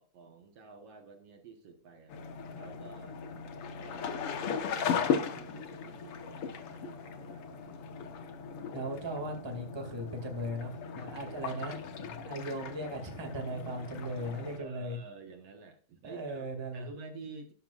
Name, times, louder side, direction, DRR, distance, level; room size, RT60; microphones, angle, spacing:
voice 1, 0.0-2.2 2.5-3.2 3.8-7.9 14.6-16.5 16.7-17.5, right 4 dB, 60° right, 5 dB, 2.2 m, -50 dB
sound 1, 2.1-14.6, left 6 dB, 60° left, 1.9 m, -37 dB
voice 2, 8.7-15.0 16.0-16.9, right 1 dB, 10° right, 3 dB, 1.8 m, -38 dB
12.5 x 11.5 x 2.4 m, 0.40 s
omnidirectional pair, 3.3 m